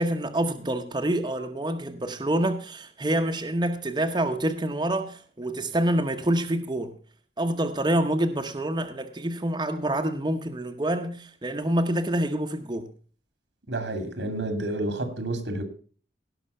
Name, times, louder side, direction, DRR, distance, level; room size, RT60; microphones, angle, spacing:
voice 1, 0.0-6.9 7.4-12.9, right 1 dB, 25° right, 0.9 m, -27 dB
voice 2, 13.7-15.6, right 2 dB, 90° right, 2.3 m, -30 dB
17.5 x 5.9 x 5.4 m
head